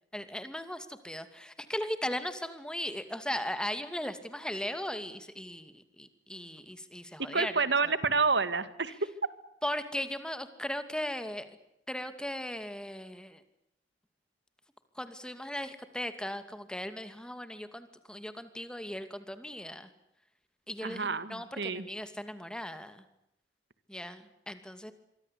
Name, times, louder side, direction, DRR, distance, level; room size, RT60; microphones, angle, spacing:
voice 1, 0.1-7.5 7.8-7.9 9.6-11.6 11.9-13.4 15.0-19.9 20.7-23.0 23.9-24.9, left 1 dB, 5° left, 10 dB, 2.5 m, -38 dB
voice 2, 7.3-9.0 20.8-21.9, right 4 dB, 85° right, 13 dB, 2.0 m, -29 dB
26.0 x 23.5 x 8.4 m, 0.79 s
head